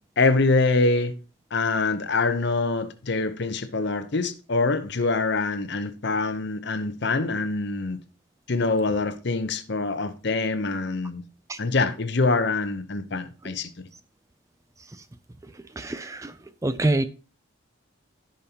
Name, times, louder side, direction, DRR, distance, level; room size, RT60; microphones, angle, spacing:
voice 1, 0.2-1.1 1.5-8.0 8.5-11.2 11.6-13.7, left 3 dB, 55° left, 0.8 m, -24 dB
voice 2, 15.8-16.3 16.6-17.0, right 2 dB, 15° right, 0.3 m, -25 dB
15.0 x 5.2 x 2.9 m
head